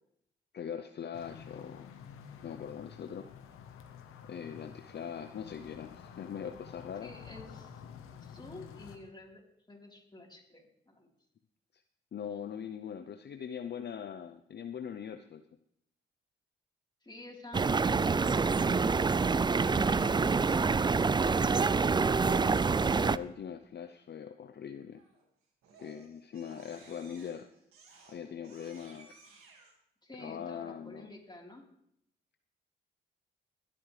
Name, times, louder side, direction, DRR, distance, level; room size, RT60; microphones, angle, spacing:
voice 1, 0.5-1.9 2.4-3.3 4.2-7.1 11.7-11.8 12.1-15.4 22.9-25.0 25.8-27.5 28.1-29.2 30.2-31.1, left 8 dB, 55° left, 9 dB, 0.6 m, -41 dB
sound 1, 1.1-9.0, left 7 dB, 85° left, 1.1 m, -50 dB
voice 2, 7.0-7.8 8.2-9.4 9.7-11.1 17.0-18.6 19.5-21.9 30.0-31.6, left 2 dB, 20° left, -1 dB, 3.9 m, -49 dB
sound 2, 17.5-23.2, right 4 dB, 20° right, 0.4 m, -26 dB
Crying sobbing, 24.9-25.2 25.6-29.7, right 4 dB, 90° right, 2.0 m, -59 dB
22.0 x 8.6 x 3.3 m, 0.74 s
supercardioid pair, 50°, 21 cm